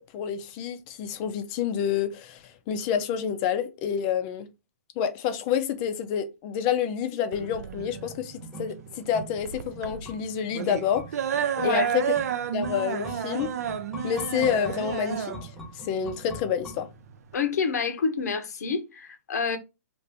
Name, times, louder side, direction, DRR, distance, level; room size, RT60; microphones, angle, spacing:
voice 1, 0.0-4.5 5.0-11.1 11.6-12.1 12.5-13.6 14.0-15.5 15.8-16.9, left 8 dB, 30° left, 0.4 m, -28 dB
sound 1, 7.3-17.3, right 9 dB, 70° right, 0.4 m, -31 dB
sound 2, 7.8-17.3 17.6-17.7, left 1 dB, 5° left, 0.8 m, -44 dB
voice 2, 11.6-11.9 17.3-19.6, left 5 dB, 75° left, 0.7 m, -28 dB
2.7 x 2.5 x 3.3 m
hypercardioid pair, 150°, 9 cm